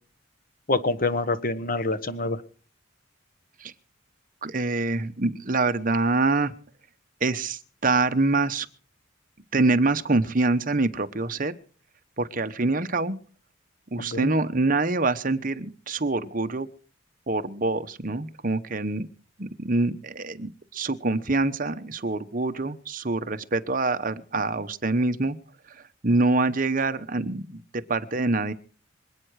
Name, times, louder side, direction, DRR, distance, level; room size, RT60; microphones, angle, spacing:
voice 1, 0.7-2.4 14.0-14.3, left 2 dB, 45° left, 12 dB, 1.2 m, -26 dB
voice 2, 4.4-6.5 7.2-8.7 9.5-11.6 12.2-13.2 13.9-16.7 17.3-19.1 19.4-25.4 25.7-28.5, right 3 dB, 40° right, 9 dB, 0.9 m, -25 dB
26.0 x 9.0 x 4.8 m, 0.41 s
head